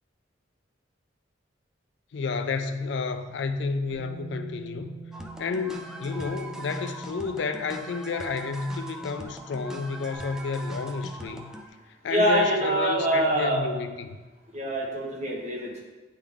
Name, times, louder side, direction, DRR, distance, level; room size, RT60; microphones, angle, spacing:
voice 1, 2.1-4.9 5.4-11.5 11.9-14.2, left 4 dB, 70° left, 0.4 m, -31 dB
Bass guitar, 3.9-10.2, right 5 dB, 55° right, 2.0 m, -47 dB
sound 1, 5.1-11.7, right 1 dB, 5° right, 0.4 m, -41 dB
voice 2, 12.1-13.7 14.5-15.8, right 1 dB, 35° right, 1.3 m, -25 dB
9.4 x 3.6 x 3.5 m
head